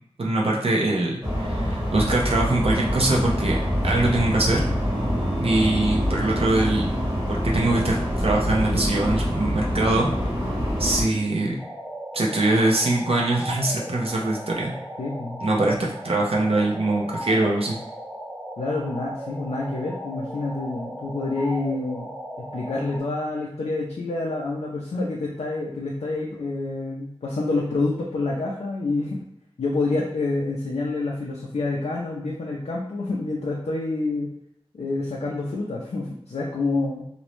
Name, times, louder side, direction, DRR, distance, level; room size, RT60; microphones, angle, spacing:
voice 1, 0.2-4.6 5.4-6.9 7.3-10.1 10.8-11.6 12.1-14.7 15.4-17.8, right 2 dB, 65° right, -2 dB, 0.5 m, -23 dB
sound 1, 1.2-11.0, equal, 40° right, 1.0 m, -25 dB
sound 2, 11.6-23.0, equal, ahead, 0.4 m, -37 dB
voice 2, 15.0-15.4 18.6-22.1 22.5-29.2 29.6-34.3 34.7-37.0, left 2 dB, 80° left, -3 dB, 0.4 m, -27 dB
2.5 x 2.0 x 3.0 m, 0.73 s
wide cardioid pair, 55°, 11 cm